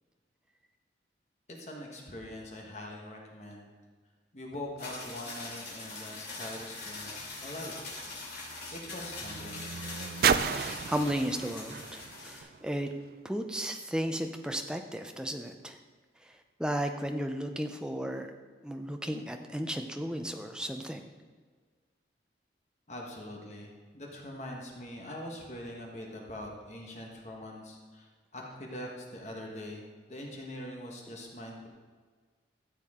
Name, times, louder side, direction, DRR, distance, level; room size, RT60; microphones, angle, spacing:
voice 1, 1.6-3.7 4.3-7.7 8.7-9.7 22.9-31.7, left 1 dB, 40° left, 0 dB, 1.4 m, -43 dB
sound 1, 4.8-12.4, left 3 dB, 65° left, 2.8 m, -42 dB
sound 2, 6.7-13.2 14.0-14.1, right 7 dB, 50° right, 0.3 m, -34 dB
voice 2, 10.6-12.9 13.2-15.8 16.6-18.3 18.6-21.0, equal, 5° right, 5 dB, 0.5 m, -34 dB
13.5 x 7.4 x 3.7 m, 1.5 s
head